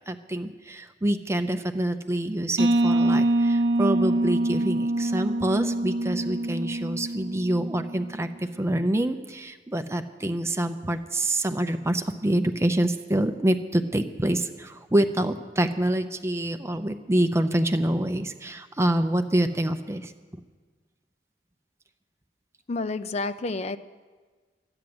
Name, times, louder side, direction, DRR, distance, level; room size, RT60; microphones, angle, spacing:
voice 1, 0.0-20.1, right 1 dB, 15° right, 8 dB, 0.6 m, -26 dB
sound 1, 2.6-8.1, right 1 dB, 90° right, 0.8 m, -25 dB
voice 2, 22.7-23.8, left 3 dB, 40° left, 11 dB, 0.5 m, -29 dB
12.5 x 9.8 x 7.8 m, 1.4 s
head